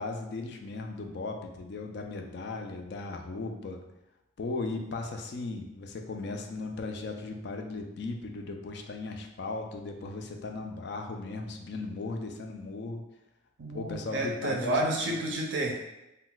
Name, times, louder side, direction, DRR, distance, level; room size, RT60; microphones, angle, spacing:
voice 1, 0.0-3.8 4.4-13.0 13.7-14.8 15.0-15.2, left 3 dB, 60° left, 4 dB, 0.3 m, -37 dB
voice 2, 13.6-15.7, right 1 dB, 70° right, 0 dB, 0.4 m, -30 dB
2.2 x 2.2 x 3.8 m, 0.92 s
head